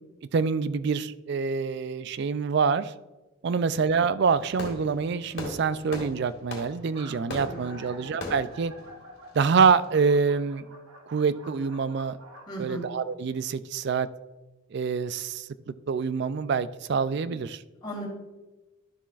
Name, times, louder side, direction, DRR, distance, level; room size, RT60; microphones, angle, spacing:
voice 1, 0.3-2.9 3.4-8.7 9.4-10.6 11.1-12.2 12.6-14.1 14.7-17.6, right 5 dB, 50° right, 15 dB, 0.3 m, -26 dB
Fireworks, 4.3-9.9, left 2 dB, 50° left, 2.1 m, -40 dB
sound 1, 6.8-13.1, right 2 dB, 75° right, 1.3 m, -48 dB
voice 2, 7.4-7.9 12.5-12.9 17.8-18.1, right 1 dB, 20° left, -5 dB, 2.7 m, -37 dB
12.0 x 7.1 x 2.4 m, 1.1 s
head